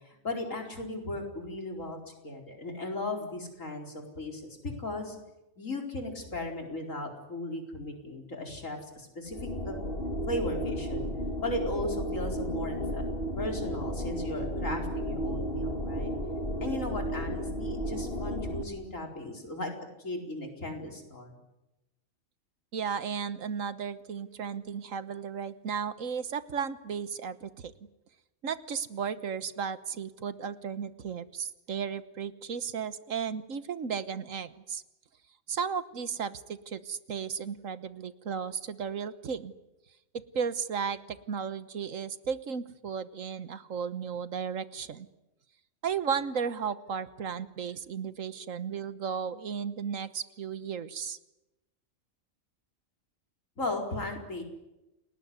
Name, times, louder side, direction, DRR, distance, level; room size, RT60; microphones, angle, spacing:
voice 1, 0.0-5.2 5.6-9.4 9.6-9.8 10.3-11.1 11.4-13.0 13.4-16.1 16.6-19.7 20.0-21.3 53.6-54.4, left 2 dB, 70° left, 2 dB, 5.0 m, -36 dB
sound 1, 9.3-18.6, equal, 45° left, 3.7 m, -33 dB
voice 2, 22.7-27.7 28.4-34.8 35.5-39.5 40.1-45.1 45.8-51.2, right 6 dB, 75° right, 13 dB, 1.5 m, -34 dB
29.5 x 19.5 x 9.6 m, 0.98 s
omnidirectional pair, 1.4 m